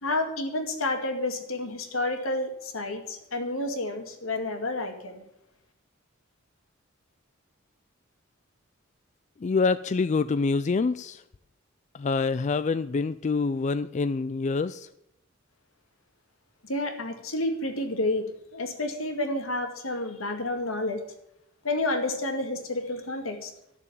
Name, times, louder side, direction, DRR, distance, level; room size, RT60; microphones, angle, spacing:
voice 1, 0.0-5.2 16.6-18.3 18.5-21.0 21.6-23.5, left 2 dB, 80° left, 5 dB, 2.2 m, -30 dB
voice 2, 9.4-11.2 11.9-14.9, left 4 dB, 35° left, 13 dB, 0.4 m, -26 dB
13.0 x 7.0 x 8.5 m, 0.79 s
head